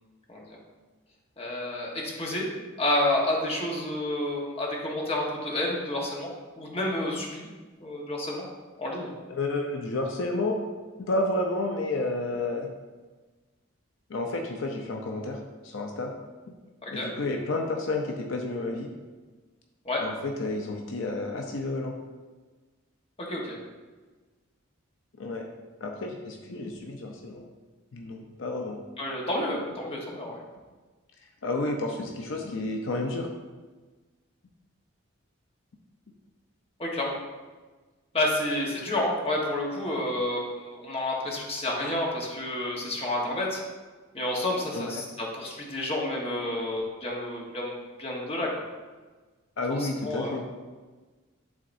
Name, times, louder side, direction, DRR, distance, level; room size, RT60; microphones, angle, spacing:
voice 1, 1.4-2.5 2.8-6.3 6.6-7.5 7.8-8.4 8.8-9.1 16.8-17.1 19.8-20.0 23.2-23.6 29.0-30.4 36.8-37.1 38.1-43.6 44.1-47.7 48.0-48.5 49.8-50.4, left 1 dB, 30° left, -3 dB, 1.2 m, -30 dB
voice 2, 9.3-10.6 11.0-12.7 14.1-16.1 16.9-18.9 20.0-22.0 25.2-25.5 25.8-27.4 27.9-28.8 31.4-33.3 44.7-45.0 49.6-50.4, left 2 dB, 70° left, 2 dB, 0.6 m, -31 dB
10.5 x 3.8 x 2.6 m, 1.3 s
head